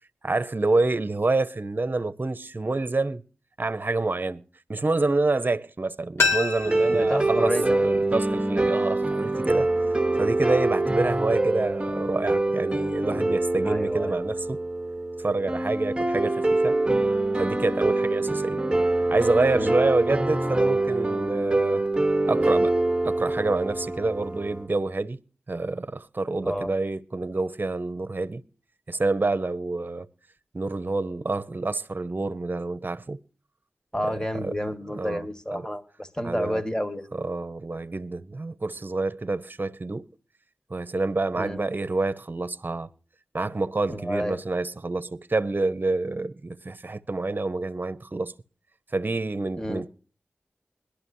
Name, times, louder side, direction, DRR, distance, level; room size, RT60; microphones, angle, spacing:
voice 1, 0.2-3.2 3.6-4.4 4.7-9.7 10.2-14.6 15.2-16.8 17.4-18.6 19.1-21.8 22.3-22.8 23.0-25.2 25.5-28.4 28.9-30.1 30.5-33.2 34.0-34.5 34.9-35.2 35.5-35.6 36.2-36.6 37.1-40.1 40.7-42.9 43.3-48.3 48.9-49.9, right 3 dB, 45° right, 0.9 m, -27 dB
sound 1, 6.2-9.0 9.3-9.4, left 4 dB, 75° left, 2.4 m, -30 dB
sound 2, 6.7-24.7, right 2 dB, 20° right, 1.2 m, -25 dB
voice 2, 6.9-7.6 13.6-14.2 19.5-19.8 26.4-26.7 33.9-37.1 41.4-41.6 43.9-44.4 49.6-49.9, equal, 15° left, 1.9 m, -30 dB
21.5 x 11.5 x 2.7 m
cardioid pair, 45°, 4 cm